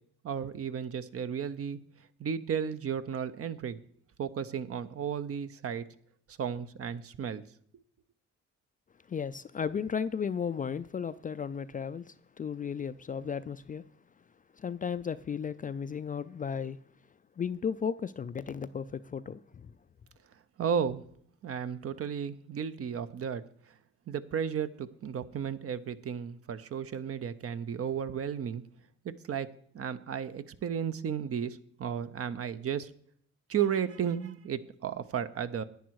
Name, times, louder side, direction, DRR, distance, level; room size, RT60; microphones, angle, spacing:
voice 1, 0.2-1.8 2.2-3.8 4.2-5.9 6.4-7.4 20.6-21.0 21.4-23.4 24.1-28.6 29.0-29.5 29.7-32.9 33.5-35.6, right 8 dB, 50° right, 0.7 m, -34 dB
voice 2, 9.1-13.8 14.5-16.8 17.4-19.7, left 7 dB, 30° left, 0.3 m, -35 dB
10.5 x 9.4 x 4.7 m
cardioid pair, 90°, 30 cm